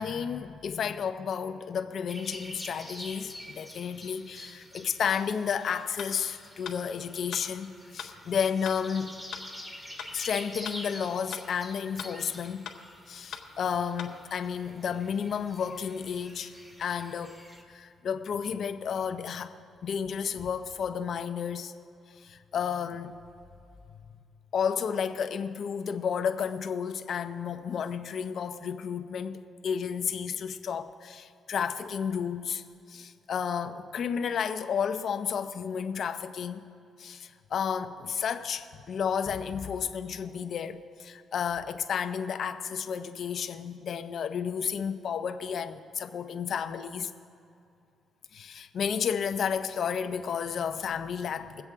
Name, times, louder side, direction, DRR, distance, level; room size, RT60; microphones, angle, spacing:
voice 1, 0.0-9.2 10.1-12.7 13.1-16.5 16.8-17.4 17.7-19.5 19.8-21.7 22.2-23.1 24.5-32.6 32.9-36.6 37.0-47.1 48.3-51.6, left 7 dB, 60° left, 0.7 m, -32 dB
sound 1, 2.1-17.6, equal, 15° right, 1.9 m, -47 dB
sound 2, 6.0-6.1 6.6-6.8 7.3-7.5 8.0-8.1 8.6-8.8 9.3-9.5 10.0-10.1 10.6-10.8 11.3-11.5 12.0-12.1 12.6-12.8 13.3-13.5 14.0-14.1, left 8 dB, 75° left, 1.3 m, -40 dB
22.5 x 7.9 x 3.6 m
cardioid pair, 90°, 0 cm